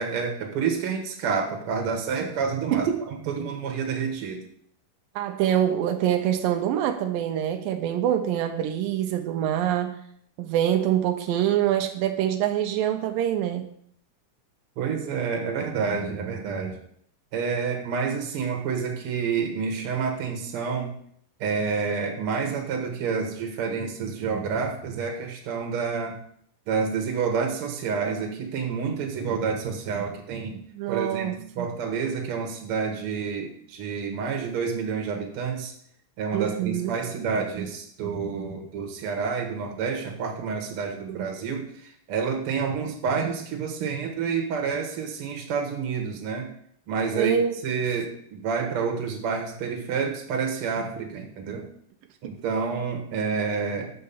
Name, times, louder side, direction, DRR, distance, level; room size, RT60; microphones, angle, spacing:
voice 1, 0.0-4.4 14.8-16.8 17.3-21.0 21.4-26.2 26.7-30.6 30.9-35.7 36.2-46.5 46.9-47.4 47.6-51.7 52.2-53.9, right 5 dB, 55° right, 2 dB, 1.8 m, -29 dB
voice 2, 5.2-10.0 10.4-13.7 30.7-31.7 36.3-36.9 41.1-41.3 47.1-47.6, right 10 dB, 80° right, 6 dB, 2.3 m, -25 dB
6.5 x 5.5 x 7.0 m, 0.65 s
omnidirectional pair, 4.0 m